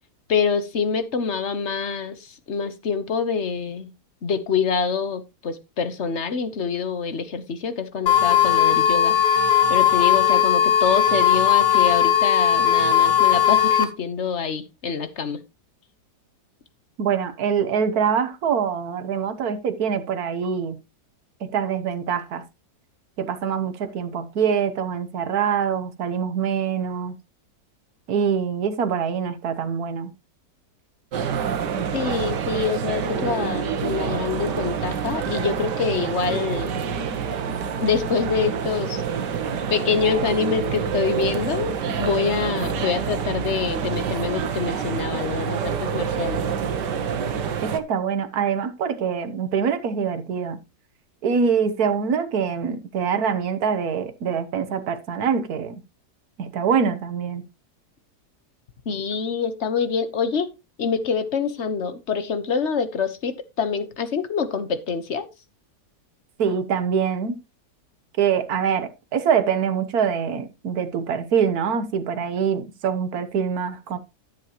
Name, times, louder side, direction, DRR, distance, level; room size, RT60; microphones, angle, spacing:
voice 1, 0.3-3.9 4.2-9.1 9.7-15.4 31.9-36.7 37.5-39.0 39.7-46.4 58.9-60.5 60.8-65.3, left 6 dB, 45° left, 1.4 m, -26 dB
sound 1, 8.1-13.8, left 9 dB, 75° left, 2.0 m, -18 dB
voice 2, 17.0-20.8 21.4-22.4 23.2-27.1 28.1-30.1 47.6-50.6 51.2-55.8 56.4-57.4 66.4-67.4 68.2-74.0, right 7 dB, 65° right, 1.6 m, -24 dB
sound 2, 31.1-47.8, right 7 dB, 85° right, 1.7 m, -27 dB
13.5 x 7.6 x 3.0 m
omnidirectional pair, 1.8 m